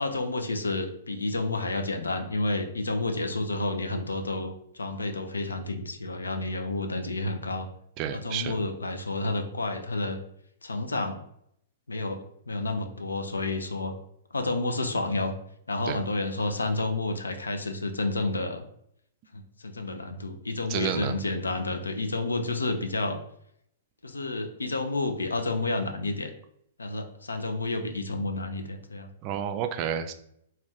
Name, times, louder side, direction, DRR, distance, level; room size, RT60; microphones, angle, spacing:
voice 1, 0.0-7.7 8.1-10.2 10.6-11.2 11.9-12.2 12.5-13.9 14.3-15.3 15.7-18.7 19.3-23.2 24.0-26.3 26.8-29.1, left 2 dB, 85° left, 7 dB, 0.4 m, -30 dB
voice 2, 8.0-8.5 15.9-16.0 20.7-21.2 29.2-30.1, right 8 dB, 40° right, 7 dB, 0.3 m, -30 dB
2.5 x 2.2 x 3.5 m, 0.72 s
figure-of-eight pair, 110°, 0 cm